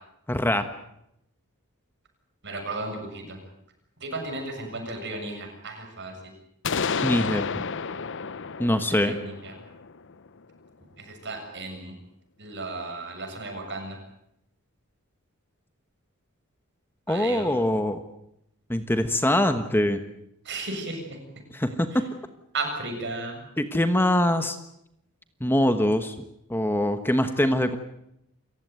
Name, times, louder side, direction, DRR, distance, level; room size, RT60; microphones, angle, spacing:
voice 1, 0.3-0.7 7.0-7.7 8.6-9.2 17.1-18.0 18.7-20.0 21.5-22.0 23.6-24.6 25.4-26.1 26.5-27.8, left 1 dB, 10° left, 9 dB, 1.2 m, -23 dB
voice 2, 2.4-3.4 4.0-6.1 9.0-9.5 11.0-11.9 12.4-14.0 17.1-17.5 20.5-21.0 22.5-23.4, right 2 dB, 55° right, 4 dB, 7.1 m, -34 dB
sound 1, 6.6-10.4, left 5 dB, 60° left, 0.9 m, -31 dB
28.5 x 16.0 x 9.4 m, 0.79 s
head